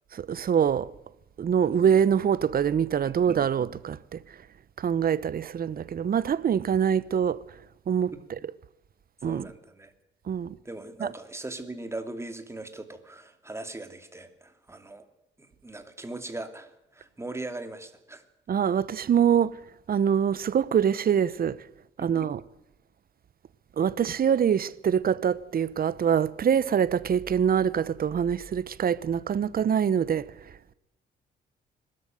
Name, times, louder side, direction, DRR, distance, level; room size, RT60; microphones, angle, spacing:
voice 1, 0.1-0.9 1.4-4.2 4.8-7.4 7.9-8.1 9.2-9.5 10.3-10.6 11.0-11.1 18.5-19.6 19.9-21.6 22.0-22.4 23.8-30.3, right 8 dB, 50° right, 1.0 m, -24 dB
voice 2, 3.0-3.5 8.1-8.2 9.2-9.9 10.6-15.1 15.4-18.2 22.0-22.1, right 2 dB, 15° right, 2.7 m, -40 dB
22.0 x 13.0 x 9.2 m
cardioid pair, 90°, 20 cm